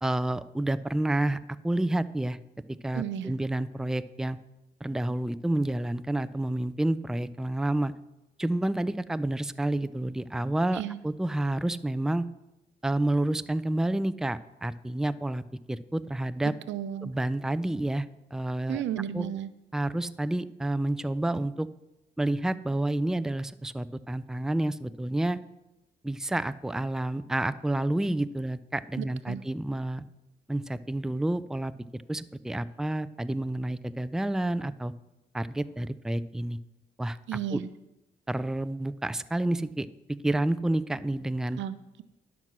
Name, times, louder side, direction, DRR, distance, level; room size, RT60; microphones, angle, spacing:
voice 1, 0.0-1.4 1.6-2.4 2.8-4.4 4.8-7.9 8.4-12.3 12.8-15.4 15.7-16.5 17.0-18.1 18.3-18.8 19.1-19.3 19.7-21.7 22.2-25.4 26.0-30.0 30.5-34.9 35.3-36.6 37.0-37.2 37.5-37.6 38.3-39.9 40.2-41.6, right 1 dB, 5° right, 14 dB, 0.5 m, -29 dB
voice 2, 2.9-3.3 10.7-11.0 16.7-17.1 18.7-19.5 29.0-29.4 37.3-37.7 41.6-42.0, right 10 dB, 75° right, 14 dB, 0.6 m, -33 dB
11.0 x 6.0 x 6.1 m, 0.97 s
supercardioid pair, 50°, 19 cm